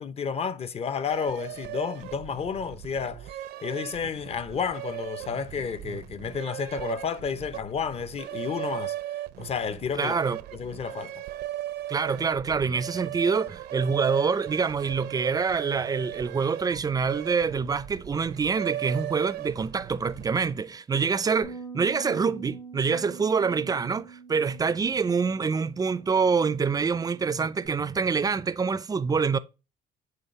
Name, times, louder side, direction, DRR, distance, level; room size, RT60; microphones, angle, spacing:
voice 1, 0.0-3.3 3.6-9.0 9.4-10.1 10.5-11.1, left 6 dB, 35° left, 0.6 m, -31 dB
sound 1, 1.1-20.5, right 14 dB, 75° right, 0.6 m, -38 dB
voice 2, 9.9-10.4 11.9-29.4, right 5 dB, 20° right, 0.4 m, -26 dB
Bass guitar, 21.4-27.7, right 5 dB, 70° left, 3.7 m, -45 dB
8.0 x 4.0 x 3.1 m
cardioid pair, 110°, 17 cm